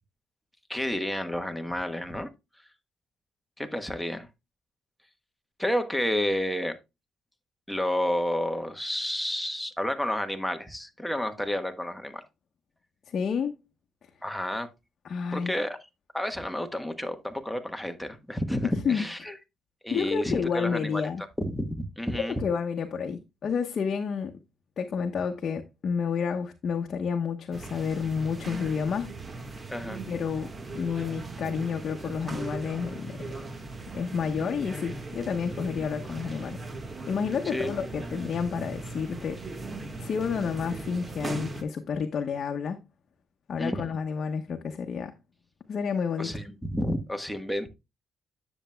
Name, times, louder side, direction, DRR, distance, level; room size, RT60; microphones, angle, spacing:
voice 1, 0.7-2.3 3.6-4.3 5.6-6.8 7.7-12.2 14.2-14.7 15.3-15.8 16.1-19.4 19.8-21.0 21.4-22.3 29.7-30.0 37.5-37.8 43.6-43.9 46.2-47.7, left 1 dB, 5° left, 1.2 m, -30 dB
voice 2, 13.1-13.6 15.0-15.5 18.6-19.0 19.9-21.2 22.4-24.3 24.8-29.1 30.1-30.5 30.7-33.2 33.9-36.7 37.1-39.4 40.0-42.8 43.5-45.1 45.7-46.3, left 6 dB, 55° left, 0.9 m, -30 dB
sound 1, 27.5-41.6, right 3 dB, 30° right, 1.5 m, -38 dB
10.0 x 7.1 x 2.2 m
cardioid pair, 90°, 0 cm